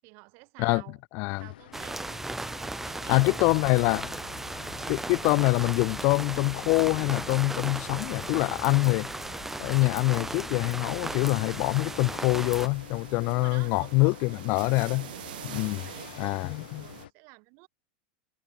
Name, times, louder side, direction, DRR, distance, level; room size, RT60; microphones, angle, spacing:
voice 1, 0.0-1.0 1.4-2.0 2.8-3.5 13.2-15.2 15.8-17.7, right 33 dB, 55° right, 7.7 m, -50 dB
voice 2, 1.1-1.5 3.1-4.1 4.9-9.1 9.6-15.1 15.4-15.8 16.2-16.8, left 29 dB, 50° left, 0.3 m, -25 dB
sound 1, 1.3-17.1, left 13 dB, 80° left, 4.6 m, -47 dB
sound 2, 1.7-12.7, right 2 dB, 5° right, 1.0 m, -36 dB
sound 3, 11.1-17.1, right 14 dB, 80° right, 2.9 m, -46 dB
supercardioid pair, 130°, 5 cm